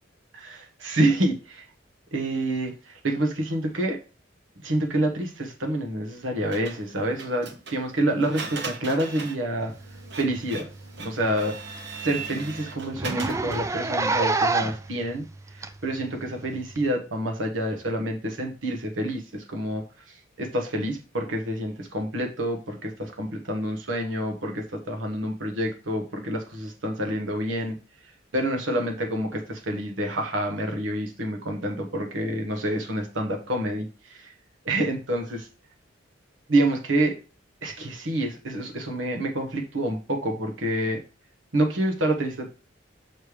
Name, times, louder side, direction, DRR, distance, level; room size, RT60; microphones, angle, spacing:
voice 1, 0.3-1.7 2.1-4.0 4.6-9.7 10.2-10.7 11.0-11.5 12.0-15.2 15.5-27.8 28.3-34.3 34.6-35.5 36.5-37.2 37.6-41.0 41.5-42.5, right 1 dB, 85° right, 3 dB, 1.2 m, -27 dB
Printer, 6.5-13.7, right 4 dB, 60° right, 0.9 m, -39 dB
Zipper (clothing), 10.4-10.5 10.8-10.9 11.3-11.4 11.8-11.9 12.1-12.3 12.9-14.9 15.6-15.7 16.7-16.8, right 3 dB, 15° right, 0.3 m, -26 dB
6.6 x 3.3 x 4.9 m, 0.33 s
head